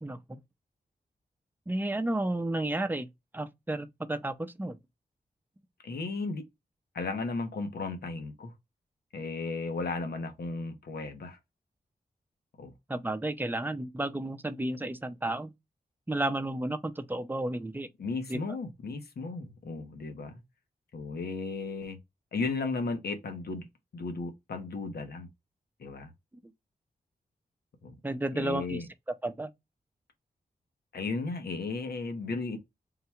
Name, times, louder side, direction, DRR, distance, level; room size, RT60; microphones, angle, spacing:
voice 1, 0.0-0.4 1.7-3.1 3.3-4.8 12.9-15.5 16.1-17.9 18.3-18.4 28.0-28.8 29.2-29.5, right 1 dB, 10° right, 0.6 m, -32 dB
voice 2, 5.8-6.5 6.9-8.5 9.1-11.4 12.6-12.7 18.0-20.4 20.9-22.0 22.3-23.6 23.9-25.3 25.8-26.1 27.8-27.9 28.3-28.9 30.9-32.6, left 3 dB, 80° left, 1.0 m, -35 dB
3.9 x 2.3 x 4.4 m
cardioid pair, 65°, 16 cm